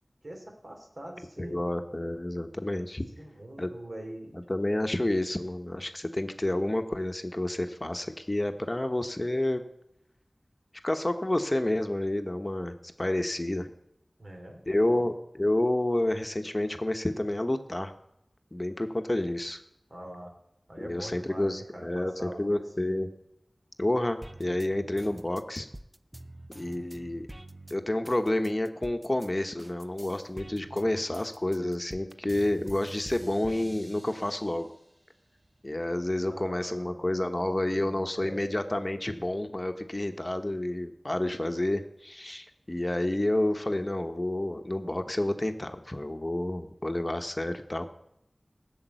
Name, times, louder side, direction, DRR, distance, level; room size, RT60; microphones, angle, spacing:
voice 1, 0.2-1.7 3.2-4.4 14.2-14.6 14.9-15.1 19.9-20.3 20.7-22.9 36.3-38.5, right 1 dB, 60° right, 2 dB, 3.2 m, -44 dB
voice 2, 1.4-3.1 3.6-3.7 4.3-9.6 10.8-13.7 14.7-17.9 18.5-19.6 20.8-23.1 23.8-25.7 26.5-27.3 27.7-34.7 35.6-47.9, left 1 dB, 30° left, 7 dB, 1.1 m, -29 dB
sound 1, 24.2-29.3 29.6-34.8 35.3-36.2, right 1 dB, 20° right, 0.6 m, -47 dB
16.0 x 7.2 x 9.2 m, 0.80 s
wide cardioid pair, 55°, 0 cm